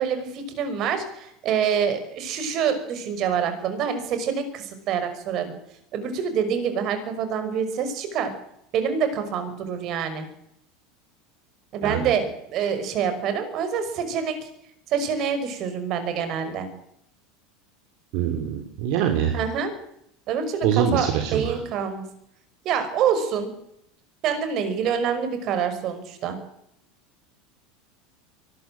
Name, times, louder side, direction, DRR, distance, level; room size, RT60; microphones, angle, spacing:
voice 1, 0.0-5.6 5.9-8.3 8.7-10.3 11.7-14.5 14.9-16.7 19.3-19.7 20.3-22.0 22.6-23.5 24.2-26.4, right 7 dB, 50° right, 9 dB, 5.7 m, -26 dB
voice 2, 11.8-12.1 18.1-19.4 20.6-21.6, right 9 dB, 65° right, 5 dB, 3.1 m, -24 dB
23.5 x 13.0 x 9.0 m, 0.77 s
supercardioid pair, 110°, 0 cm